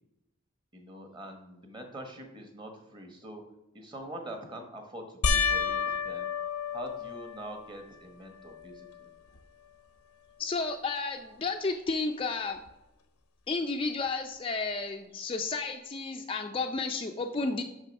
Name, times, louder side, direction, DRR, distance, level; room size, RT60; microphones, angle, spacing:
voice 1, 0.7-3.4 3.7-5.8 6.0-6.3 6.7-9.1, right 1 dB, 20° right, 4 dB, 1.1 m, -44 dB
sound 1, 5.2-7.8 8.4-9.0 9.4-9.5 12.7-12.8, left 5 dB, 90° left, 0.7 m, -31 dB
voice 2, 10.4-12.6 13.5-17.6, left 3 dB, 25° left, 4 dB, 0.4 m, -32 dB
6.2 x 6.1 x 5.3 m, 0.97 s
head